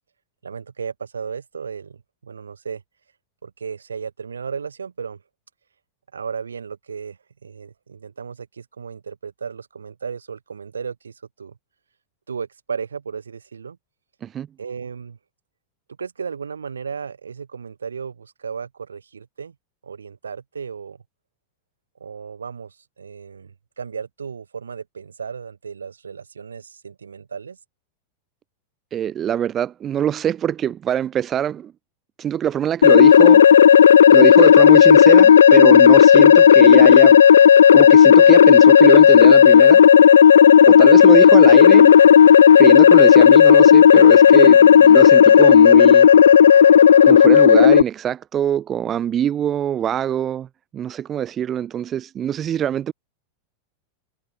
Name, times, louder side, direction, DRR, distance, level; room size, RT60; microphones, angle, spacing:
voice 1, 0.4-2.8 3.4-5.2 6.1-11.6 12.3-13.8 14.6-15.2 16.0-19.5 19.8-21.0 22.0-27.6, right 6 dB, 70° right, 5.0 m, -34 dB
voice 2, 28.9-31.7 32.2-33.5 34.1-37.2 37.7-39.8 40.6-42.0 42.5-46.1 47.0-50.5 50.7-52.9, right 10 dB, 25° right, 1.1 m, -23 dB
sound 1, 32.8-47.8, left 8 dB, 65° left, 0.5 m, -9 dB
figure-of-eight pair, 90°, 0 cm